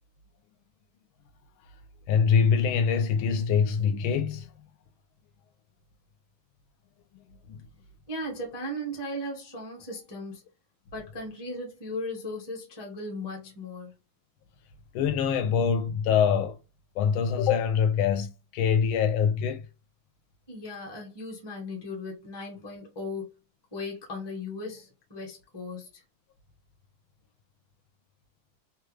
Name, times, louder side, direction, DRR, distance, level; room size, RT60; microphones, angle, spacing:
voice 1, 2.1-4.5 7.5-7.6 14.9-16.6 17.0-19.6, left 7 dB, 80° left, 1.3 m, -24 dB
voice 2, 8.1-10.4 10.9-13.9 20.5-23.3 23.7-26.0, left 1 dB, 20° left, 0.7 m, -37 dB
3.3 x 2.3 x 3.1 m
omnidirectional pair, 2.3 m